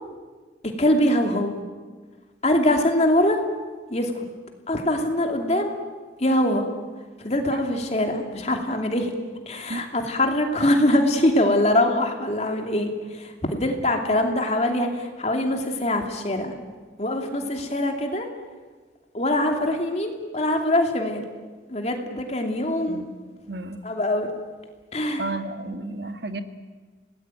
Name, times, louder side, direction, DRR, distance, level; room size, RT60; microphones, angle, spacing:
voice 1, 0.8-1.5 2.4-3.4 3.9-4.2 4.7-5.8 6.2-6.7 7.2-9.1 9.5-16.6 17.0-18.3 19.1-21.2 21.7-23.0 23.8-24.3 24.9-25.2, left 1 dB, 35° left, 3 dB, 2.8 m, -23 dB
voice 2, 23.5-23.8 25.2-26.4, right 2 dB, 60° right, 8 dB, 1.6 m, -32 dB
27.0 x 19.0 x 9.2 m, 1.4 s
head